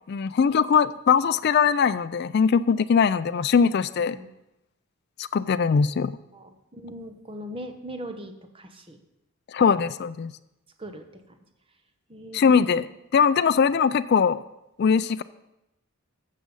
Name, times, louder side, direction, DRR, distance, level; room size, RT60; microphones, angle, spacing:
voice 1, 0.1-4.2 5.2-6.2 9.5-10.3 12.3-14.4 14.8-15.2, left 6 dB, 50° left, 12 dB, 0.3 m, -21 dB
voice 2, 6.3-9.0 9.6-9.8 10.8-11.4 12.1-12.9, equal, 25° right, 6 dB, 0.9 m, -40 dB
13.5 x 7.5 x 5.4 m, 0.89 s
head